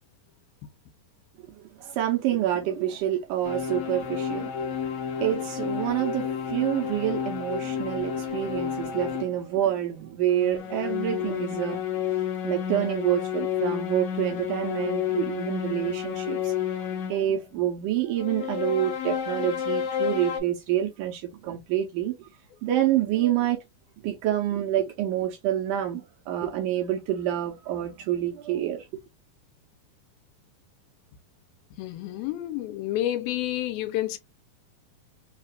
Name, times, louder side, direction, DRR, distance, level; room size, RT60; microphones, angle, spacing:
voice 1, 1.6-4.8 5.2-11.8 12.4-22.3 22.6-23.6 24.0-28.9, right 12 dB, 80° right, 1.9 m, -27 dB
sound 1, 3.4-9.4 10.3-17.3 18.2-20.4, left 8 dB, 65° left, 1.9 m, -30 dB
voice 2, 31.8-34.2, left 13 dB, 85° left, 2.4 m, -29 dB
5.6 x 2.4 x 2.2 m
omnidirectional pair, 4.3 m